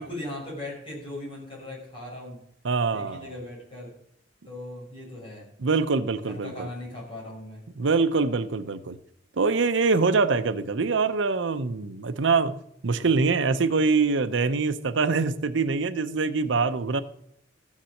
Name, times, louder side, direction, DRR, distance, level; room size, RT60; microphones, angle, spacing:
voice 1, 0.0-2.4 2.9-3.9 4.5-5.5 6.2-7.6, left 1 dB, 30° left, -3 dB, 5.8 m, -38 dB
voice 2, 2.6-3.3 5.6-6.7 7.8-9.0 9.4-12.6 12.8-17.0, right 4 dB, 85° right, 11 dB, 0.7 m, -24 dB
14.0 x 7.3 x 6.5 m, 0.72 s
head